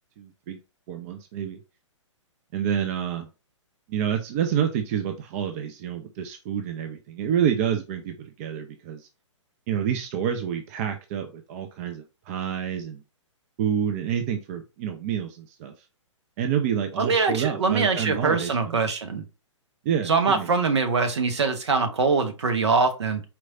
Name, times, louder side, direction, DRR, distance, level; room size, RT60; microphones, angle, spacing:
voice 1, 0.2-0.6 0.9-1.6 2.5-3.3 3.9-9.1 9.7-13.0 13.6-15.7 16.4-18.5 19.8-20.5, right 8 dB, 30° right, 6 dB, 0.5 m, -28 dB
voice 2, 17.0-19.2 20.1-23.2, right 4 dB, 60° right, 6 dB, 1.0 m, -23 dB
4.4 x 3.1 x 2.5 m, 0.30 s
figure-of-eight pair, 120°, 16 cm